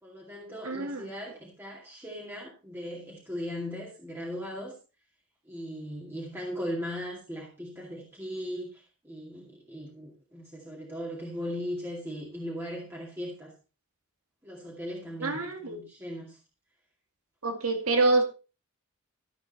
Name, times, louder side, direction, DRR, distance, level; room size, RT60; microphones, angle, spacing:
voice 1, 0.0-4.8 5.4-13.5 14.4-16.4, equal, 10° right, -3 dB, 2.3 m, -38 dB
voice 2, 0.6-1.0 15.2-15.8 17.4-18.2, right 3 dB, 75° right, 5 dB, 2.3 m, -26 dB
13.5 x 7.7 x 4.1 m, 0.31 s
head